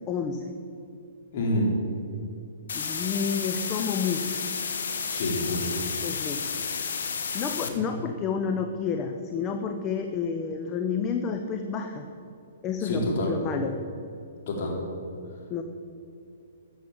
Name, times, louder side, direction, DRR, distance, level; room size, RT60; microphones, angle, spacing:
voice 1, 0.1-0.5 2.7-4.4 6.0-6.4 7.3-12.0 12.6-13.8 15.5-15.6, left 6 dB, 25° left, 5 dB, 0.8 m, -30 dB
voice 2, 1.3-1.7 5.1-5.8 7.6-7.8 12.8-13.4 14.5-14.8, left 1 dB, 45° left, -2 dB, 3.7 m, -27 dB
sound 1, 2.7-7.7, left 6 dB, 65° left, 1.3 m, -31 dB
14.0 x 7.4 x 7.3 m, 2.6 s
figure-of-eight pair, 120°, 0 cm